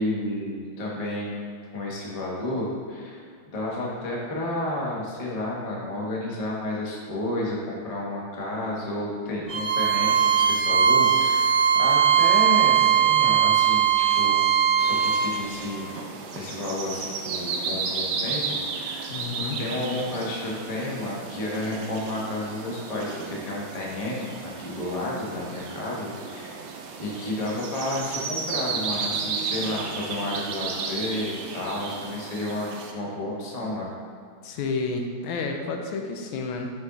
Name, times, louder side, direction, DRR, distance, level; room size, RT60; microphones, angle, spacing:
voice 1, 0.0-1.4 1.7-14.4 14.8-15.9 16.3-19.2 19.6-26.6 27.0-33.9, left 1 dB, 35° left, -4 dB, 0.6 m, -31 dB
Bowed string instrument, 9.5-15.2, right 8 dB, 50° right, 0.9 m, -20 dB
sound 1, 14.8-32.9, right 5 dB, 75° right, 1.0 m, -34 dB
voice 2, 19.1-19.6 34.4-36.7, left 4 dB, 80° left, 3 dB, 1.4 m, -30 dB
6.0 x 4.7 x 3.8 m, 2.2 s
omnidirectional pair, 2.3 m